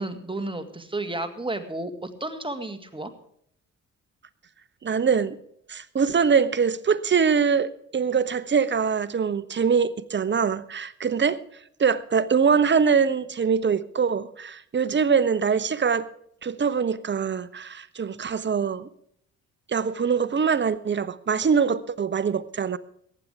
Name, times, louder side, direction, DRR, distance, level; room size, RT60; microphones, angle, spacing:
voice 1, 0.0-3.1, right 2 dB, 15° right, 2.0 m, -32 dB
voice 2, 4.8-5.4 5.7-11.4 11.8-16.1 16.4-18.9 19.7-22.8, right 6 dB, 30° right, 0.9 m, -23 dB
22.5 x 10.0 x 3.6 m
figure-of-eight pair, 40°, 39 cm